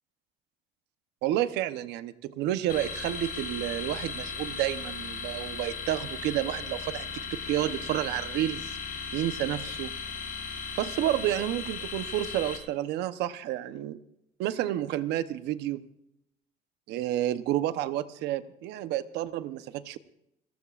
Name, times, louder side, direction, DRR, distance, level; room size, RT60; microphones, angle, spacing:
voice 1, 1.2-8.8 9.1-9.9 10.8-14.0 14.4-15.8 16.9-20.0, right 13 dB, 90° right, 12 dB, 0.9 m, -30 dB
sound 1, 2.7-12.6, left 6 dB, 65° left, 5.3 m, -37 dB
30.0 x 15.5 x 2.5 m, 0.79 s
cardioid pair, 110°, 17 cm